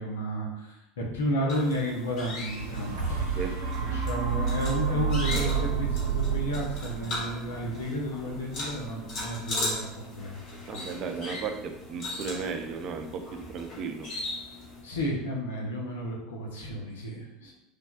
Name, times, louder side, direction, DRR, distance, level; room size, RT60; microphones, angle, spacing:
voice 1, 0.0-3.4 3.8-9.8 10.1-10.8 14.8-17.5, equal, 80° left, 0 dB, 0.6 m, -32 dB
sound 1, 1.5-14.8, left 2 dB, 55° left, 1.2 m, -38 dB
sound 2, 2.2-10.2 10.8-10.9, right 6 dB, 80° right, 0.7 m, -31 dB
voice 2, 10.7-14.1, right 5 dB, 50° right, 6 dB, 0.3 m, -35 dB
3.3 x 2.2 x 2.4 m, 0.91 s
hypercardioid pair, 80°, 0 cm